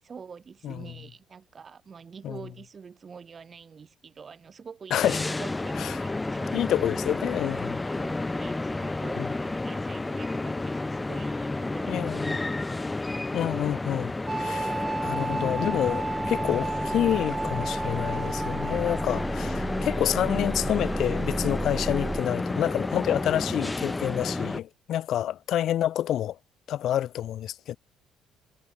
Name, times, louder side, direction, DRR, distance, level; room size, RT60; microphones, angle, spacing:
voice 1, 0.0-6.5 7.9-12.5, right 6 dB, 35° right, 2.7 m, -46 dB
voice 2, 4.9-5.2 5.8-5.9 6.5-7.8 9.2-9.3 11.9-12.4 13.3-14.8 15.0-26.4 26.7-27.8, left 11 dB, 65° left, 0.5 m, -28 dB
sound 1, 5.0-24.6, left 2 dB, 15° left, 1.7 m, -31 dB
sound 2, 14.3-22.2, right 3 dB, 20° right, 0.9 m, -33 dB
cardioid pair, 100°, 0 cm